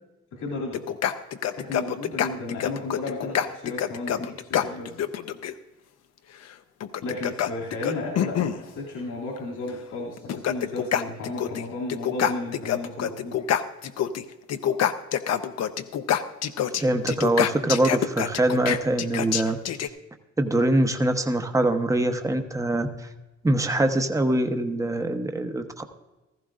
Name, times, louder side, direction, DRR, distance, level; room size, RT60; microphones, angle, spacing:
voice 1, 0.3-0.8 1.5-5.0 7.0-13.5, left 2 dB, 80° left, -3 dB, 2.7 m, -33 dB
sound 1, 0.7-5.5 6.8-8.6 9.7-9.8 10.2-11.6 11.9-14.2 14.5-19.9, left 10 dB, 60° left, 0.7 m, -26 dB
voice 2, 16.8-19.6 20.4-22.9 23.4-25.8, right 1 dB, 10° right, 6 dB, 0.9 m, -23 dB
15.5 x 14.5 x 2.5 m, 1.1 s
cardioid pair, 90°, 30 cm